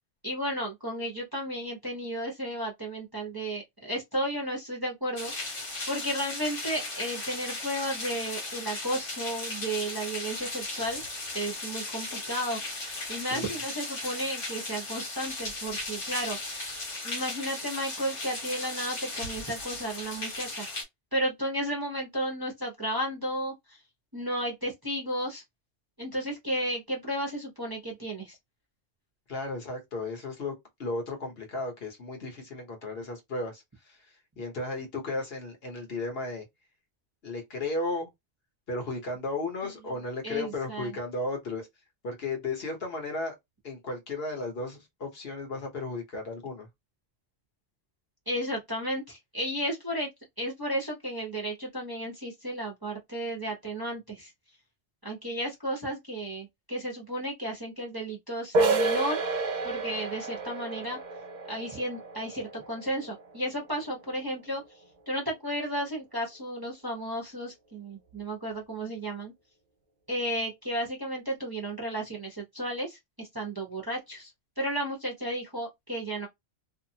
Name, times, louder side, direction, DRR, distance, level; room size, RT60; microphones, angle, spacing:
voice 1, 0.2-11.0 11.3-16.7 17.0-20.7 21.1-23.8 24.1-25.4 26.0-28.4 39.6-39.7 40.2-40.9 48.3-50.1 50.4-54.3 55.0-59.2 59.6-61.0 61.5-64.6 65.1-69.3 70.1-74.3 74.6-76.3, right 1 dB, 20° right, 0.8 m, -33 dB
sound 1, 5.2-20.8, left 2 dB, 80° left, 1.5 m, -36 dB
voice 2, 13.2-13.6 29.3-30.5 30.8-34.0 34.4-36.4 37.2-38.1 38.7-41.7 42.0-43.4 43.6-46.7, left 2 dB, 55° left, 1.2 m, -34 dB
sound 2, 58.5-64.0, right 3 dB, 55° right, 0.5 m, -30 dB
2.7 x 2.4 x 2.8 m
omnidirectional pair, 1.2 m